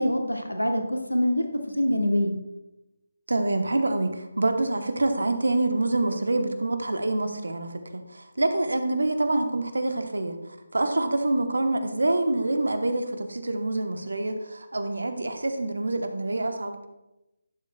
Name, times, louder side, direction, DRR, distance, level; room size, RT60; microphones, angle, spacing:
voice 1, 0.0-1.5 1.8-2.3, equal, 90° left, 4 dB, 1.1 m, -24 dB
voice 2, 3.3-16.8, right 2 dB, 65° right, 7 dB, 1.0 m, -26 dB
11.5 x 7.2 x 2.3 m, 0.96 s
figure-of-eight pair, 150°, 0 cm